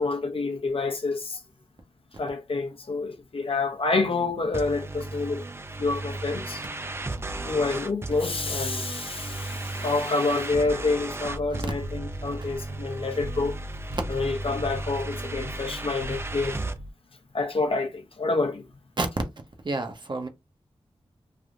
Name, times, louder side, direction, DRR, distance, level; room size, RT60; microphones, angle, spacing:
voice 1, 0.0-1.4 2.2-5.4 5.8-6.6 7.4-13.6 14.1-16.6 17.3-18.6, left 3 dB, 60° left, 0.7 m, -28 dB
sound 1, 4.5-16.8, right 2 dB, 25° right, 0.4 m, -35 dB
sound 2, 11.2-16.9, equal, 85° right, 0.6 m, -38 dB
voice 2, 19.6-20.3, right 2 dB, 45° right, 0.7 m, -30 dB
3.3 x 2.6 x 2.4 m
wide cardioid pair, 90°, 11 cm